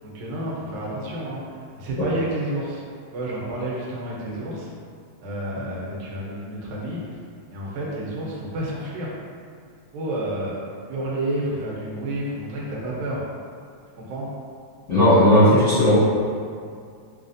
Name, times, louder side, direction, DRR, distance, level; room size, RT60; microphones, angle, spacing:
voice 1, 0.0-2.8 3.1-4.7 5.2-7.1 7.5-9.1 9.9-10.5 10.9-13.2 14.0-14.3, right 1 dB, 85° right, -5 dB, 2.2 m, -30 dB
voice 2, 14.9-15.9, equal, 40° left, -15 dB, 1.1 m, -15 dB
6.0 x 2.5 x 2.5 m, 2.2 s
omnidirectional pair, 3.3 m